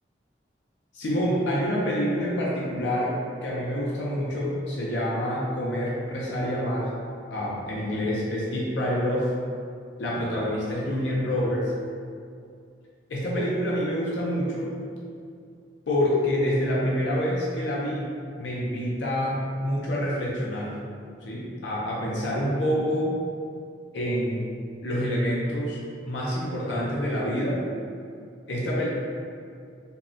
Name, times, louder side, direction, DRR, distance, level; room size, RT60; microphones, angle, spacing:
voice 1, 0.9-6.9 7.3-9.3 10.0-11.7 13.1-14.8 15.9-20.8 21.2-23.2 23.9-24.5 24.8-27.6 28.5-28.9, equal, 80° left, -5 dB, 0.5 m, -27 dB
3.5 x 2.0 x 2.5 m, 2.4 s
head